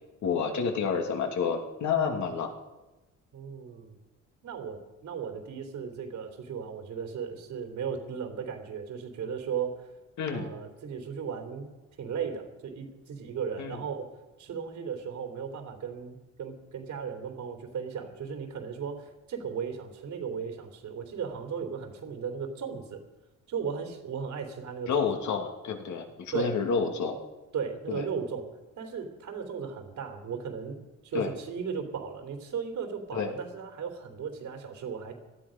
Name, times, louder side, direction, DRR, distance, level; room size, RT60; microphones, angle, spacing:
voice 1, 0.2-2.5 10.2-10.5 13.6-13.8 24.9-27.2 27.9-28.0 31.1-31.3 33.1-33.3, left 6 dB, 70° left, 4 dB, 2.6 m, -29 dB
voice 2, 3.3-4.0 4.4-9.9 10.3-11.7 12.0-14.1 14.4-23.0 23.5-25.1 26.3-26.6 27.5-28.5 28.8-30.8 31.0-35.1, right 6 dB, 70° right, 4 dB, 3.3 m, -36 dB
18.0 x 13.0 x 5.3 m, 1.1 s
cardioid pair, 90°, 30 cm